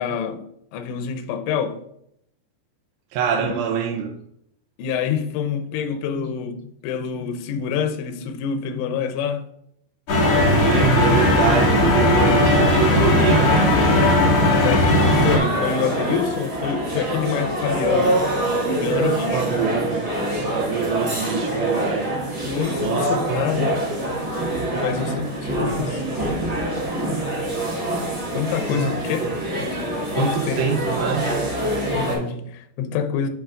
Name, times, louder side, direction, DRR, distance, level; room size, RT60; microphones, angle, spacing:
voice 1, 0.0-1.8 3.4-3.6 4.8-9.5 14.4-18.2 18.7-19.5 20.9-21.0 22.4-23.8 24.7-26.2 28.3-29.2 29.6-29.7 30.2-30.6 31.9-33.3, left 7 dB, 90° left, 3.0 m, -27 dB
voice 2, 3.1-4.1 10.1-13.8 19.3-20.1 20.4-22.2 22.8-23.5 24.7-24.9 25.6-26.0 28.7-29.5 30.2-31.3, right 7 dB, 80° right, 2.6 m, -25 dB
sound 1, 10.1-15.4, left 1 dB, 55° left, 1.7 m, -17 dB
sound 2, 15.1-32.2, right 1 dB, 30° right, 2.4 m, -25 dB
10.5 x 5.0 x 2.4 m
omnidirectional pair, 5.2 m